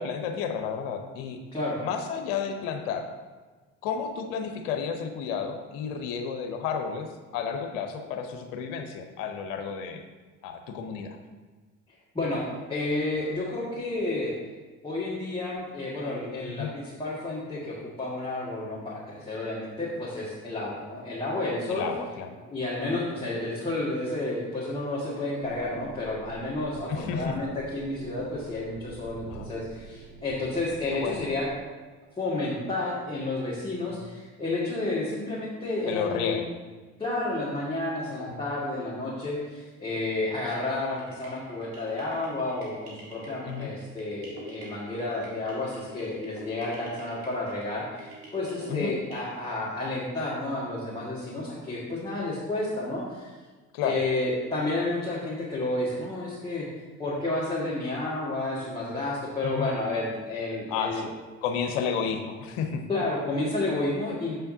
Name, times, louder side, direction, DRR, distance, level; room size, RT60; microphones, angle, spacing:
voice 1, 0.0-1.4 1.8-3.1 3.8-7.1 7.3-10.0 10.4-11.2 16.5-16.7 21.7-22.3 26.9-27.3 29.3-29.5 30.9-31.3 35.9-36.5 38.3-38.4 43.4-43.7 48.7-48.9 53.7-54.0 59.4-59.7 60.7-61.1 61.4-62.8, left 6 dB, 70° left, 5 dB, 0.8 m, -31 dB
voice 2, 12.1-14.3 14.8-21.9 22.5-31.5 32.2-36.4 37.0-53.3 53.8-56.7 57.0-61.1 62.9-64.3, left 2 dB, 15° left, -7 dB, 1.8 m, -31 dB
sound 1, 25.4-31.5, right 4 dB, 50° right, 0.9 m, -46 dB
sound 2, 41.0-49.3, equal, 75° right, 1.7 m, -47 dB
7.2 x 5.6 x 2.7 m, 1.3 s
hypercardioid pair, 55°, 37 cm